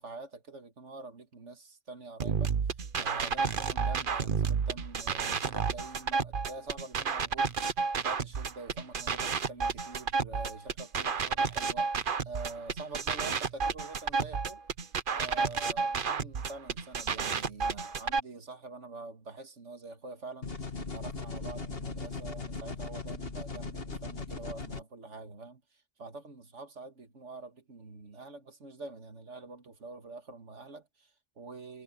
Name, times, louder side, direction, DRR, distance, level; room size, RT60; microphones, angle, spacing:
voice 1, 0.0-2.5 3.0-7.6 8.0-14.6 15.1-20.6 20.9-31.8, right 3 dB, 70° right, 2.3 m, -46 dB
sound 1, 2.2-18.2, right 5 dB, 45° right, 1.1 m, -31 dB
sound 2, 20.4-24.8, left 4 dB, 50° left, 2.5 m, -38 dB
omnidirectional pair, 1.3 m